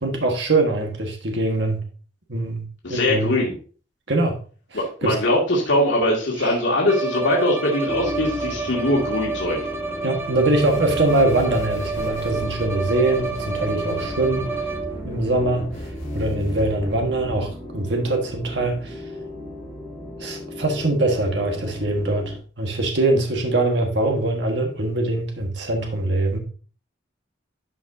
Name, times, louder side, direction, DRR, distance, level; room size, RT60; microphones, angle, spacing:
voice 1, 0.0-1.8 2.3-2.6 2.9-3.3 4.1-4.4 5.0-5.1 6.4-6.6 10.0-14.7 15.0-15.7 16.1-19.0 20.2-26.4, right 2 dB, 65° right, 3 dB, 1.5 m, -23 dB
voice 2, 2.8-3.5 4.7-9.6, left 1 dB, 80° left, -3 dB, 2.3 m, -21 dB
Bowed string instrument, 6.9-15.1, right 4 dB, 15° right, 0.7 m, -29 dB
sound 1, 7.9-22.4, left 1 dB, ahead, 3.5 m, -36 dB
sound 2, 10.6-17.4, equal, 40° left, 2.5 m, -37 dB
11.5 x 5.3 x 2.7 m, 0.39 s
head